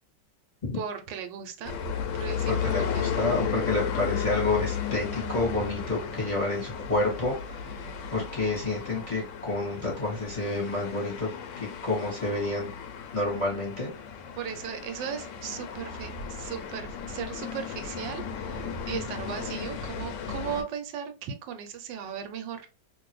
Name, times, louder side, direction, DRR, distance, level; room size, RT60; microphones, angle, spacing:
voice 1, 0.7-1.7 2.1-3.1 14.4-22.6, right 8 dB, 85° right, 7 dB, 1.3 m, -37 dB
sound 1, 1.6-20.6, left 7 dB, 85° left, 1.3 m, -34 dB
voice 2, 2.5-7.8 8.1-11.3 11.6-12.7 13.1-13.9, left 2 dB, 20° left, -3 dB, 1.1 m, -29 dB
2.9 x 2.6 x 3.0 m, 0.33 s
omnidirectional pair, 1.9 m